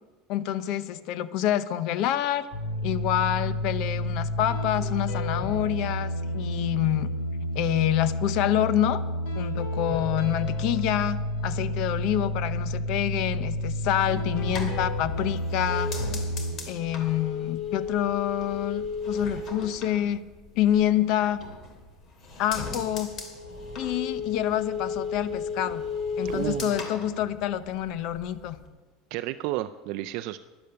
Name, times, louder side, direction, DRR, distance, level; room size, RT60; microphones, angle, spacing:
voice 1, 0.3-2.5 2.8-7.2 7.5-9.0 9.4-16.0 16.7-20.2 20.6-21.4 22.4-23.1 23.8-25.8 26.2-28.6, left 12 dB, 60° left, 15 dB, 0.8 m, -27 dB
sound 1, 2.5-16.5, left 1 dB, 75° left, 3.2 m, -30 dB
sound 2, 14.0-20.8 21.2-21.9 22.2-27.9 28.2-28.7, left 4 dB, 40° left, 2.7 m, -34 dB
voice 2, 26.3-26.8 29.1-30.4, right 15 dB, 60° right, 10 dB, 0.4 m, -32 dB
12.0 x 11.0 x 6.8 m, 1.3 s
supercardioid pair, 130°, 0 cm